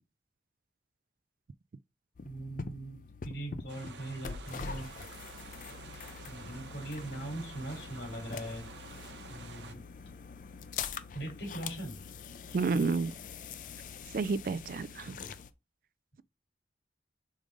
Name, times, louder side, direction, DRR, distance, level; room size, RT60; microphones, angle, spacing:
sound 1, 2.1-15.5, left 5 dB, 45° left, 0.4 m, -44 dB
voice 1, 2.2-4.9 6.3-8.7 9.3-9.8 11.1-12.0 15.2-15.3, right 1 dB, 75° left, 3.4 m, -41 dB
sound 2, 3.7-9.7, right 5 dB, 90° right, 1.0 m, -50 dB
voice 2, 12.5-13.1 14.1-15.2, right 4 dB, 50° right, 0.3 m, -30 dB
5.2 x 3.7 x 5.0 m
head